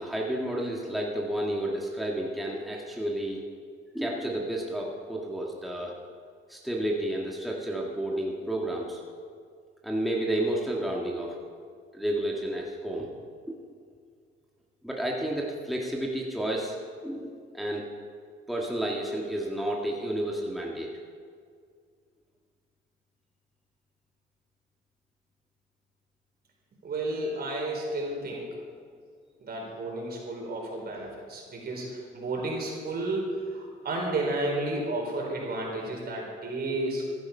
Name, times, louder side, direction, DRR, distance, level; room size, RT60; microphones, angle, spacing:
voice 1, 0.0-3.4 3.9-5.9 6.5-9.0 9.8-11.3 11.9-13.1 14.8-16.7 17.0-17.3 17.5-17.8 18.5-20.9, right 1 dB, ahead, -2 dB, 1.8 m, -31 dB
voice 2, 26.8-28.5 29.4-37.1, right 2 dB, 50° right, -1 dB, 4.4 m, -32 dB
15.0 x 11.0 x 5.6 m, 2.1 s
cardioid pair, 90°, 20 cm